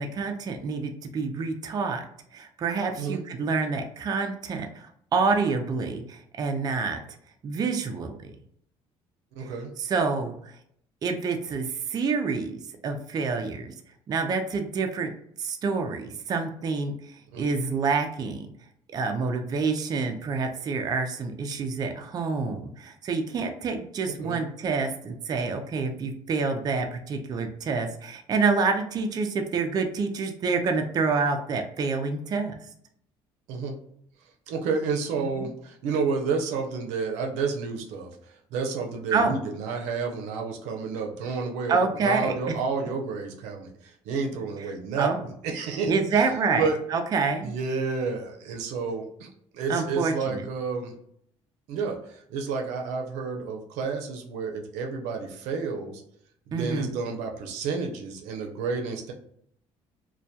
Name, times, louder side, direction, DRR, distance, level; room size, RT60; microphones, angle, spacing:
voice 1, 0.0-2.0 2.3-7.0 7.4-8.3 9.4-10.5 11.0-13.7 14.1-15.1 15.4-18.5 18.9-32.5 35.2-35.5 39.1-39.4 41.7-42.5 44.7-45.3 45.9-47.5 49.7-50.4 56.5-56.9, right 4 dB, 35° right, 5 dB, 0.3 m, -27 dB
voice 2, 9.4-9.7 17.3-17.5 24.2-24.4 33.5-33.7 34.5-38.1 38.5-45.1 45.4-46.8 47.4-49.3 49.5-50.9 51.7-56.0 56.5-59.1, right 4 dB, 90° right, 2 dB, 0.5 m, -30 dB
2.2 x 2.1 x 2.7 m, 0.69 s
cardioid pair, 110°, 12 cm